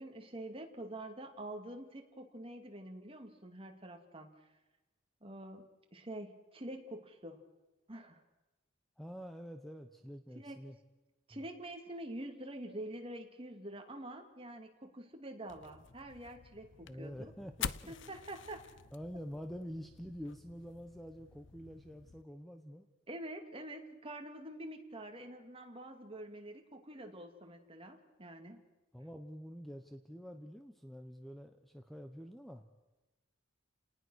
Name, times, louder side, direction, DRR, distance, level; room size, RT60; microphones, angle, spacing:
voice 1, 0.0-4.3 5.2-7.4 7.9-8.2 10.3-10.6 11.3-17.3 17.9-18.7 23.1-28.6, right 1 dB, 30° right, 4 dB, 2.4 m, -46 dB
voice 2, 9.0-10.8 16.8-17.9 18.9-22.9 28.9-32.6, equal, ahead, 6 dB, 1.0 m, -47 dB
sound 1, 15.5-22.2, left 8 dB, 65° left, 0.7 m, -48 dB
30.0 x 19.0 x 6.4 m, 1.1 s
head